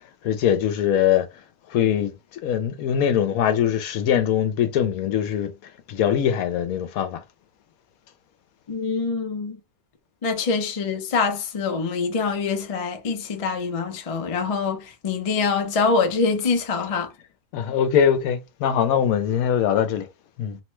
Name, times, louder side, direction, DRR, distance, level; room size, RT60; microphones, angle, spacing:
voice 1, 0.2-1.3 1.7-2.1 2.4-5.5 5.9-7.2 17.5-20.1 20.4-20.6, left 9 dB, 80° left, 1.0 m, -22 dB
voice 2, 8.7-9.6 10.2-17.1, left 4 dB, 60° left, 0.3 m, -24 dB
2.9 x 2.1 x 3.0 m
omnidirectional pair, 1.5 m